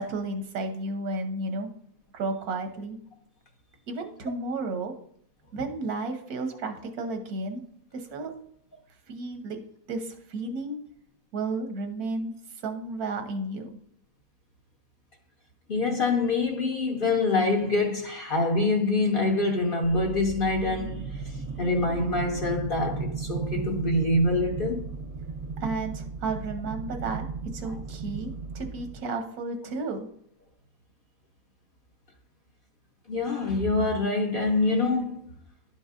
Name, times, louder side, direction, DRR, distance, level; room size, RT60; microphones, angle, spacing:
voice 1, 0.0-1.7 2.1-3.0 3.9-4.9 5.5-7.6 7.9-8.4 9.1-9.6 9.9-10.8 11.3-12.3 12.6-13.7 25.6-27.3 27.5-30.1, right 3 dB, 85° right, 1.4 m, -32 dB
voice 2, 15.7-21.3 21.6-24.9 27.6-27.7 33.1-35.3, left 2 dB, 50° left, 0.7 m, -25 dB
sound 1, 19.8-28.9, right 4 dB, 55° right, 0.8 m, -35 dB
11.0 x 5.3 x 2.5 m
omnidirectional pair, 1.6 m